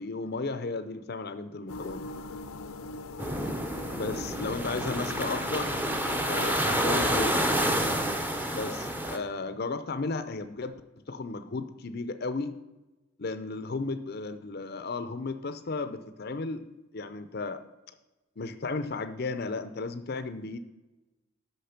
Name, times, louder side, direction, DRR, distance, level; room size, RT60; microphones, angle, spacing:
voice 1, 0.0-2.1 3.9-5.7 6.3-7.4 8.5-10.7 11.1-12.5 13.2-16.6 16.9-17.6 18.4-20.6, left 3 dB, 45° left, 10 dB, 0.5 m, -34 dB
sound 1, 1.7-8.2, left 3 dB, 85° left, 0.7 m, -41 dB
sound 2, 3.2-9.2, right 1 dB, 10° right, 0.6 m, -29 dB
8.5 x 6.3 x 5.8 m, 1.1 s
head